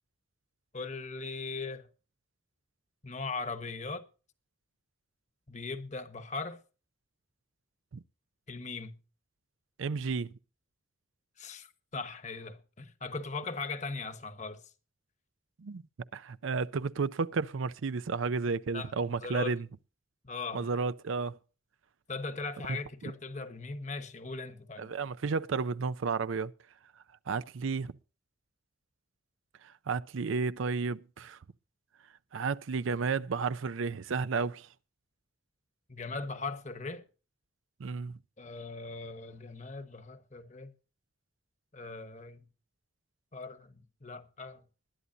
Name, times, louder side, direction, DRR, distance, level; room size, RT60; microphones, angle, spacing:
voice 1, 0.7-1.9 3.0-4.0 5.5-6.6 8.5-9.0 11.4-14.7 18.7-19.6 20.2-20.7 22.1-24.9 35.9-37.0 38.4-40.7 41.7-42.5 43.3-44.6, left 3 dB, 35° left, 1.1 m, -39 dB
voice 2, 9.8-10.3 15.6-15.8 16.1-19.7 20.5-21.4 24.8-26.5 27.3-28.0 29.6-31.4 32.3-34.7 37.8-38.2, right 4 dB, 85° right, 0.5 m, -32 dB
20.5 x 11.0 x 2.7 m
head